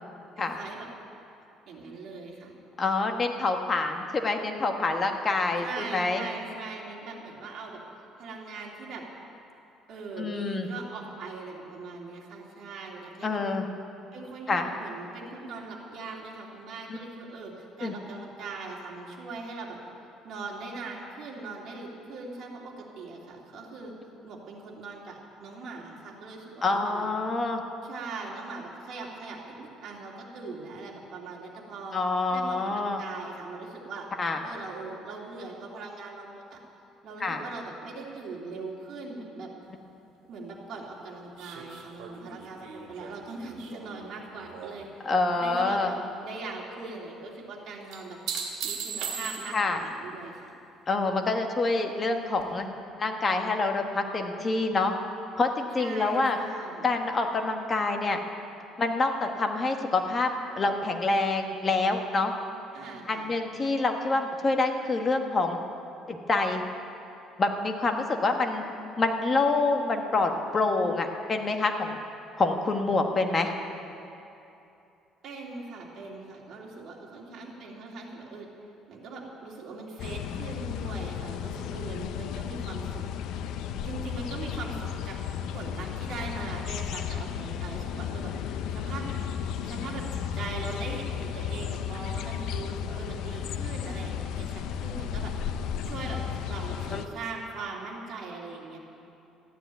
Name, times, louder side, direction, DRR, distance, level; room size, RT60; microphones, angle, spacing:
voice 1, 0.4-0.9 1.7-2.5 5.6-7.8 8.2-9.0 9.9-13.4 14.1-19.8 20.2-23.9 24.2-27.1 27.8-32.0 32.3-34.1 34.4-36.6 37.0-39.5 40.3-45.1 45.4-46.0 46.2-48.2 48.6-50.6 55.8-56.9 62.7-63.3 75.2-78.5 78.9-83.0 83.8-85.2 85.5-88.3 88.7-89.1 89.6-95.3 95.8-98.8, right 3 dB, 55° right, -2 dB, 3.0 m, -40 dB
voice 2, 2.8-6.2 10.2-10.7 13.2-13.7 14.5-14.7 16.9-17.0 17.8-17.9 26.6-27.6 31.9-33.0 34.2-34.4 37.2-37.4 45.0-45.9 49.5-49.8 50.9-52.7 53.0-54.9 55.4-56.4 56.8-58.2 58.8-62.3 63.1-65.6 66.1-66.6 67.4-68.6 69.0-72.0 72.4-73.5 96.9-97.0, left 3 dB, 25° left, 4 dB, 1.3 m, -26 dB
sound 1, 41.4-44.9 45.2-45.8 47.9-49.8 52.4-52.5, right 6 dB, 80° right, 2.3 m, -38 dB
sound 2, 80.0-97.1, left 8 dB, 70° left, 0.6 m, -34 dB
14.0 x 10.0 x 9.2 m, 2.8 s
cardioid pair, 140°, 0 cm